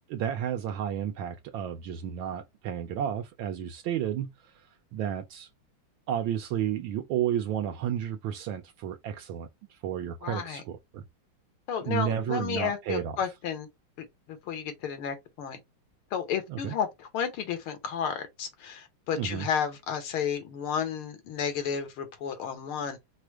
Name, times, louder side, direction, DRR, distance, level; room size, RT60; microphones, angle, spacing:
voice 1, 0.1-5.5 6.1-11.0 11.9-13.2 16.5-16.7 19.2-19.5, right 10 dB, 75° right, 1.3 m, -32 dB
voice 2, 10.2-10.6 11.7-13.7 14.0-15.6 16.1-23.0, left 7 dB, 85° left, 1.9 m, -32 dB
4.8 x 2.0 x 4.5 m
omnidirectional pair, 2.3 m